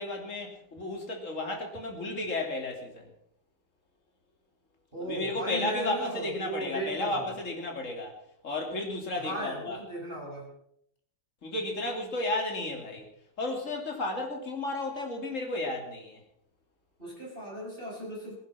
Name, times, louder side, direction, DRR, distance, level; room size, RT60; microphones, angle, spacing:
voice 1, 0.0-3.1 5.0-8.2 8.4-9.8 11.4-13.1 13.4-16.2, left 2 dB, 35° left, 2 dB, 3.3 m, -33 dB
voice 2, 4.9-7.4 9.1-10.5 17.0-18.3, equal, 25° right, -5 dB, 6.3 m, -37 dB
20.0 x 10.5 x 5.8 m, 0.70 s
omnidirectional pair, 2.4 m